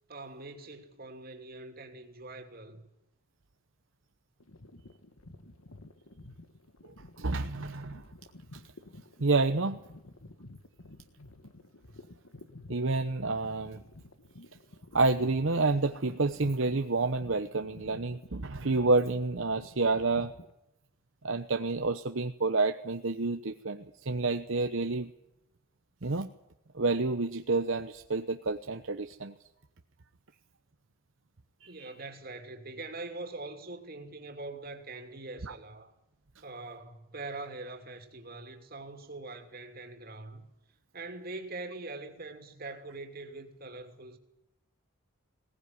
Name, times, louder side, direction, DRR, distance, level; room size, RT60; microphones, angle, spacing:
voice 1, 0.1-2.8 31.7-35.9 36.4-40.4 40.9-44.2, right 2 dB, 45° right, 2.9 m, -43 dB
sound 1, 4.4-20.5, left 2 dB, 80° left, 1.8 m, -51 dB
voice 2, 7.2-8.0 9.2-9.8 12.7-13.8 14.9-20.3 21.2-25.1 26.0-26.3 26.7-29.3 31.6-31.9 35.4-35.5, right 3 dB, 65° right, 0.9 m, -29 dB
20.5 x 18.5 x 9.7 m
head